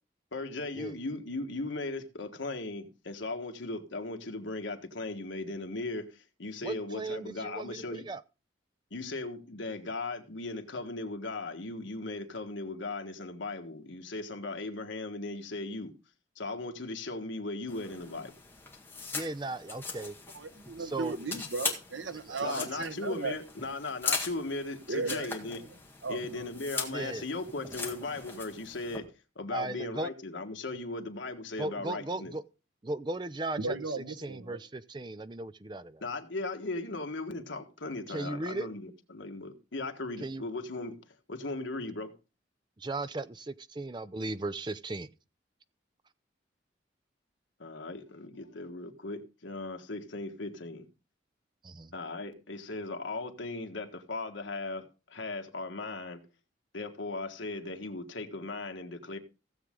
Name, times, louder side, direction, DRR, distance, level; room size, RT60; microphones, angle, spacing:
voice 1, 0.3-8.0 8.9-15.9 16.3-18.3 22.4-25.6 26.1-32.3 36.0-40.9 41.3-42.1 47.6-50.9 51.9-56.2 56.7-59.2, left 2 dB, 80° left, 1.6 m, -37 dB
voice 2, 6.6-8.2 19.1-20.1 20.8-21.2 22.3-22.7 26.9-27.2 29.5-30.1 31.6-32.4 32.8-33.8 34.2-36.0 38.1-38.7 40.2-40.4 42.8-45.1 51.6-51.9, right 2 dB, 25° right, 0.5 m, -36 dB
sound 1, 17.7-29.0, left 4 dB, 10° left, 1.8 m, -40 dB
voice 3, 20.3-23.4 24.9-25.7 26.0-26.5 33.6-34.6, right 3 dB, 85° right, 1.1 m, -36 dB
16.0 x 7.5 x 3.7 m
head